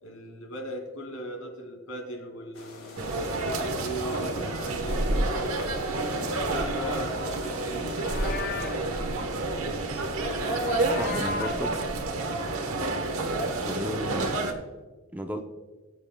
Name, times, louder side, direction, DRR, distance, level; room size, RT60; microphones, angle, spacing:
voice 1, 0.0-3.1 3.4-6.1 6.5-9.4, right 1 dB, 85° left, 3 dB, 2.5 m, -39 dB
sound 1, 2.5-7.7, left 2 dB, 70° left, 2.4 m, -47 dB
sound 2, 3.0-14.5, right 2 dB, 80° right, 1.2 m, -29 dB
Livestock farm animals working animals, 7.7-8.9 10.2-11.7, left 5 dB, 45° left, 0.5 m, -36 dB
voice 2, 10.9-11.8 13.5-14.5 15.1-15.4, equal, 10° right, 5 dB, 0.6 m, -34 dB
20.5 x 7.6 x 2.3 m, 1.3 s
head